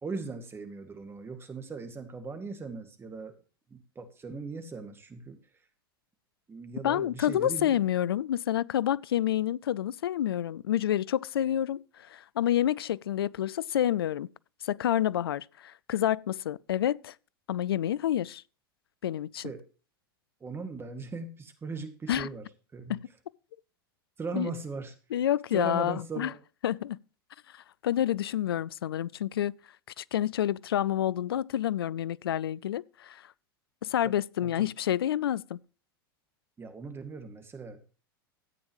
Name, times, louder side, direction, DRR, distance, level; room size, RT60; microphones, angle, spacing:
voice 1, 0.0-3.3 3.7-5.4 6.5-7.8 19.4-19.6 20.4-22.5 22.7-23.0 24.2-24.9 25.5-26.4 34.0-34.1 34.4-34.7 36.6-37.8, right 4 dB, 20° right, 2.1 m, -39 dB
voice 2, 6.8-14.3 14.6-17.1 17.5-18.4 19.0-19.5 22.1-22.3 22.9-23.0 24.4-24.5 25.1-26.3 26.6-27.0 27.5-29.6 30.0-33.2 33.8-35.6, left 11 dB, 80° left, 0.4 m, -28 dB
13.5 x 8.8 x 3.1 m
hypercardioid pair, 95°, 12 cm